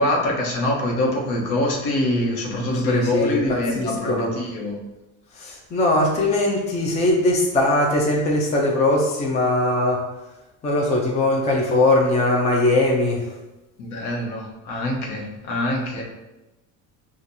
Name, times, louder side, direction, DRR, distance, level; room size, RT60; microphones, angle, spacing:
voice 1, 0.0-4.8 13.8-16.0, left 1 dB, 70° left, -1 dB, 1.1 m, -24 dB
voice 2, 2.8-4.3 5.4-10.0 10.6-13.2, left 2 dB, 20° left, -1 dB, 0.4 m, -20 dB
6.1 x 2.4 x 2.7 m, 1.0 s
cardioid pair, 170°, 34 cm